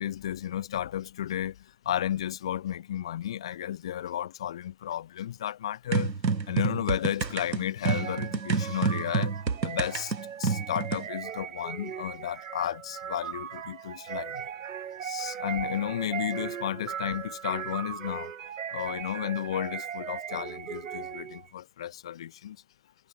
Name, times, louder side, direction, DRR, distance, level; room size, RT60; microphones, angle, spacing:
voice 1, 0.0-1.6 1.9-6.1 6.5-9.3 9.6-10.1 10.4-14.4 15.0-18.3 18.7-22.6, left 11 dB, 5° left, 0.5 m, -33 dB
sound 1, 5.9-11.1, right 5 dB, 85° right, 1.6 m, -28 dB
sound 2, 7.8-21.5, right 8 dB, 50° right, 3.2 m, -38 dB
figure-of-eight pair, 135°, 49 cm